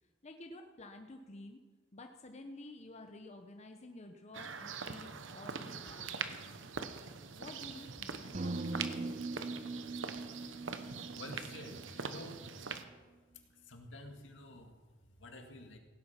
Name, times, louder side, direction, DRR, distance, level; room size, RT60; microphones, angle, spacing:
voice 1, 0.2-1.6 1.9-6.7 7.1-9.3, left 2 dB, 35° left, 4 dB, 0.9 m, -51 dB
sound 1, 4.3-12.8, right 5 dB, 80° right, 1.0 m, -43 dB
sound 2, 8.3-12.5, right 2 dB, 35° right, 0.6 m, -41 dB
voice 2, 10.0-10.6 11.1-12.5 13.5-15.8, left 1 dB, 75° left, 4 dB, 2.0 m, -50 dB
16.5 x 10.0 x 5.7 m, 1.4 s
head